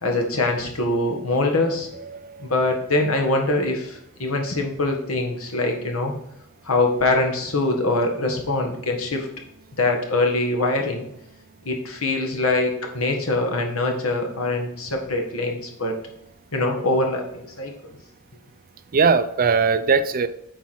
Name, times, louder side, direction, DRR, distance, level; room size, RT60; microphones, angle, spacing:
voice 1, 0.0-1.9 2.4-6.1 6.6-9.3 9.8-11.0 11.6-16.0 16.5-17.9, left 2 dB, 70° left, 2 dB, 1.6 m, -23 dB
voice 2, 2.0-2.5 18.9-20.3, right 5 dB, 40° right, 12 dB, 0.5 m, -20 dB
8.4 x 4.7 x 4.3 m, 0.82 s
head